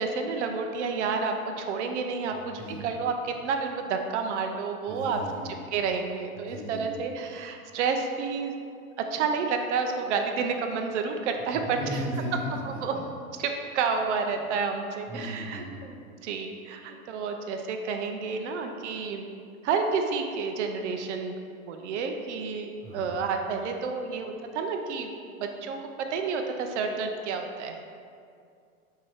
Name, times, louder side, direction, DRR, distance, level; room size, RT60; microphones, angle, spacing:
voice 1, 0.0-5.2 5.7-8.5 9.0-12.0 12.6-12.9 13.4-15.9 16.2-19.2 19.6-21.3 21.7-25.1 25.4-25.8 26.1-27.8, right 5 dB, 50° right, 4 dB, 0.7 m, -30 dB
voice 2, 2.3-2.8 4.9-5.5 6.4-6.9 11.5-13.0 14.3-14.4 15.1-15.7 22.8-23.1, equal, ahead, -11 dB, 0.4 m, -36 dB
7.2 x 2.9 x 4.8 m, 2.4 s
supercardioid pair, 150°, 44 cm